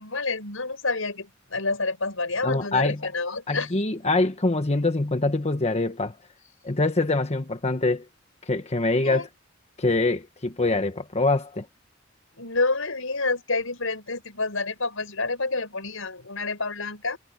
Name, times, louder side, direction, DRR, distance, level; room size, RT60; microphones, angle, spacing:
voice 1, 0.0-3.7 9.0-9.3 12.3-17.2, left 3 dB, 90° left, 5.1 m, -28 dB
voice 2, 2.4-3.0 3.5-6.2 6.6-8.0 8.5-9.3 9.8-11.6, left 2 dB, 35° left, 1.2 m, -24 dB
head